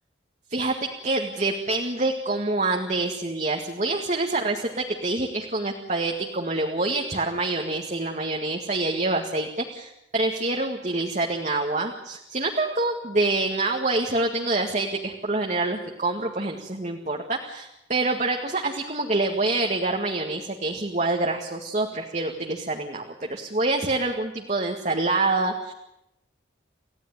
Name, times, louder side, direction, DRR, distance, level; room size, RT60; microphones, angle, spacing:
voice 1, 0.5-25.7, right 2 dB, 40° right, 2 dB, 1.9 m, -26 dB
29.5 x 15.5 x 9.8 m, 0.88 s
head